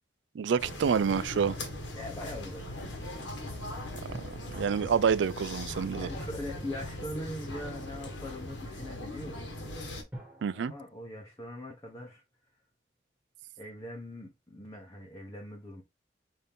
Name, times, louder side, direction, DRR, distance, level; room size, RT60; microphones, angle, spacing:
voice 1, 0.3-1.6 4.1-4.2 4.5-6.1 10.4-10.7, right 6 dB, 80° right, 0.4 m, -28 dB
sound 1, 0.6-10.0, left 1 dB, 85° left, 1.4 m, -40 dB
voice 2, 1.9-3.2 4.6-4.9 6.0-9.5 10.5-12.2 13.6-15.8, left 1 dB, 20° left, 0.7 m, -42 dB
sound 2, 10.1-12.7 13.0-13.1, equal, 10° right, 1.5 m, -52 dB
5.7 x 2.7 x 3.4 m
head